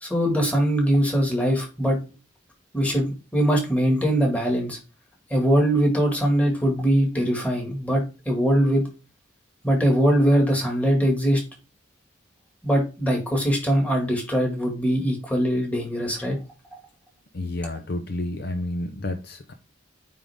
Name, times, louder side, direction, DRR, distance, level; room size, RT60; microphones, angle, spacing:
voice 1, 0.0-2.0 2.7-4.8 5.3-8.8 9.6-11.4 12.6-16.4, equal, 5° left, 1.9 m, -22 dB
voice 2, 17.3-19.5, left 1 dB, 55° left, 0.6 m, -30 dB
9.1 x 3.7 x 3.5 m
head